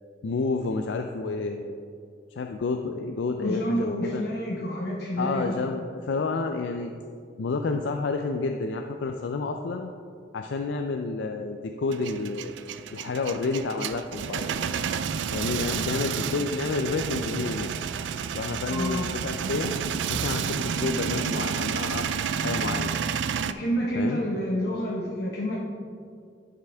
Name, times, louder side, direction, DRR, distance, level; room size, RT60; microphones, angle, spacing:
voice 1, 0.2-1.8 2.4-4.2 5.2-6.9 7.4-9.9 10.3-12.5 12.9-14.5 15.3-17.8 18.3-19.7 20.1-22.1 22.4-22.9 23.9-24.2, left 3 dB, 85° left, 5 dB, 0.4 m, -30 dB
voice 2, 3.4-5.6 18.7-19.1 23.5-25.6, equal, 60° left, -3 dB, 0.9 m, -28 dB
Male speech man speaking / Vehicle / Engine starting, 11.9-23.5, right 7 dB, 80° right, 0.3 m, -30 dB
11.5 x 5.8 x 3.4 m, 2.4 s
head